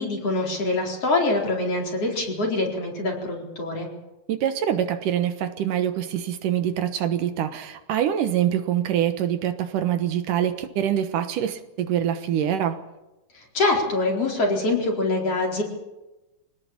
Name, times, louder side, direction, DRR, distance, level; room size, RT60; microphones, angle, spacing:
voice 1, 0.0-3.9 13.5-15.6, left 2 dB, 45° left, 0 dB, 5.2 m, -24 dB
voice 2, 4.3-12.8, right 10 dB, 70° right, 9 dB, 2.7 m, -25 dB
25.5 x 18.5 x 7.3 m, 1.0 s
omnidirectional pair, 3.9 m